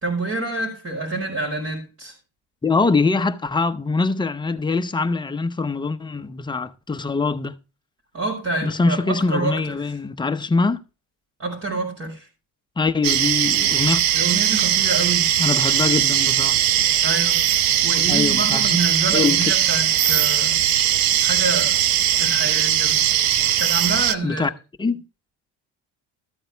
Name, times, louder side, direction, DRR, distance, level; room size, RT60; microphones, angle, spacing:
voice 1, 0.0-2.1 8.1-9.8 11.4-12.3 14.1-15.3 17.0-17.4 17.8-20.6 21.2-21.8 22.2-23.0 23.6-24.5, right 2 dB, 40° right, 5.0 m, -27 dB
voice 2, 2.6-7.6 8.6-10.8 12.8-14.0 15.4-16.6 18.1-18.8 19.1-19.4 24.2-24.5 24.8-25.0, left 4 dB, 15° left, 0.7 m, -23 dB
sound 1, 13.0-24.1, right 11 dB, 75° right, 0.9 m, -19 dB
13.5 x 8.9 x 3.4 m
cardioid pair, 115°, 36 cm